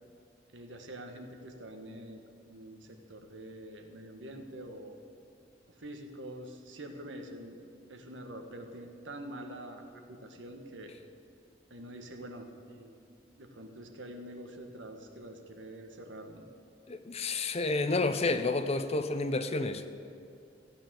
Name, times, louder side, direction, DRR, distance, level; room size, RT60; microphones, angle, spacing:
voice 1, 0.5-5.0 5.7-7.6 7.9-10.9 11.7-12.9 13.4-16.4, right 1 dB, 80° right, 4 dB, 1.5 m, -46 dB
voice 2, 16.9-19.9, left 3 dB, 35° left, 10 dB, 0.7 m, -30 dB
15.0 x 9.1 x 7.6 m, 2.5 s
head